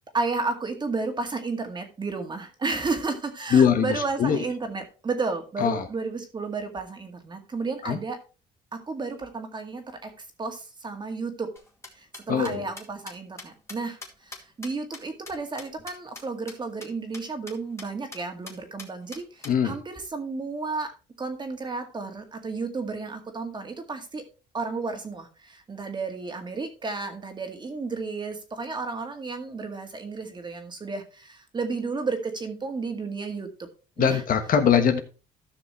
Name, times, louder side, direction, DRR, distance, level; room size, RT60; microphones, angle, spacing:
voice 1, 0.1-8.2 8.7-10.1 10.4-11.5 11.9-20.9 21.2-24.2 24.5-33.5 34.0-34.2, right 4 dB, 25° right, 5 dB, 2.0 m, -32 dB
voice 2, 3.5-4.4 5.6-5.9 7.8-8.0 12.3-12.6 19.4-19.7 34.0-35.0, left 7 dB, 55° left, 7 dB, 1.4 m, -21 dB
sound 1, 11.6-16.2 16.5-16.6 16.8-16.9 17.1-17.2 17.5-17.9 18.1-18.2 18.5-19.5, left 2 dB, 15° left, 2.2 m, -42 dB
14.0 x 5.9 x 3.2 m, 0.33 s
cardioid pair, 110°, 17 cm